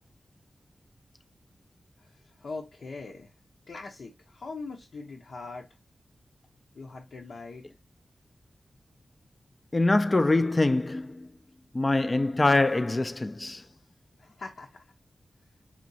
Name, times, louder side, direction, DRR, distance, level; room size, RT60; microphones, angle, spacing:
voice 1, 2.0-3.3 3.7-5.7 6.7-7.7 14.2-14.9, left 3 dB, 80° left, 1.0 m, -41 dB
voice 2, 9.7-11.3 11.7-13.6, left 2 dB, 30° left, 0.4 m, -24 dB
6.0 x 2.9 x 2.7 m
wide cardioid pair, 80°, 0 cm